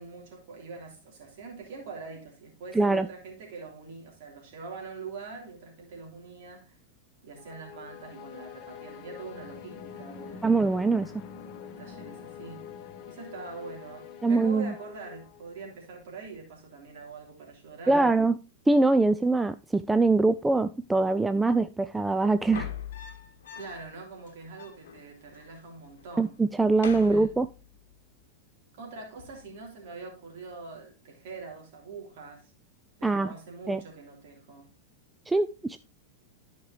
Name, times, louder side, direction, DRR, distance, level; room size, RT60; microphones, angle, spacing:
voice 1, 0.0-6.8 7.2-10.8 11.6-12.7 13.1-18.2 23.5-26.3 27.0-27.3 28.8-32.5 33.0-34.7, right 4 dB, 50° right, 3.2 m, -44 dB
voice 2, 2.8-3.1 10.4-11.1 14.2-14.7 17.9-18.4 18.7-22.7 26.2-27.5 33.0-33.3 33.7-33.8 35.3-35.8, right 3 dB, 10° right, 0.3 m, -23 dB
sound 1, 7.4-15.8, left 7 dB, 40° left, 0.9 m, -45 dB
sound 2, 22.4-24.0 24.3-24.4 24.5-25.5 25.8-26.2 26.5-27.9 29.2-29.6, left 8 dB, 60° left, 1.1 m, -42 dB
13.0 x 5.1 x 2.9 m
figure-of-eight pair, 90°, 0 cm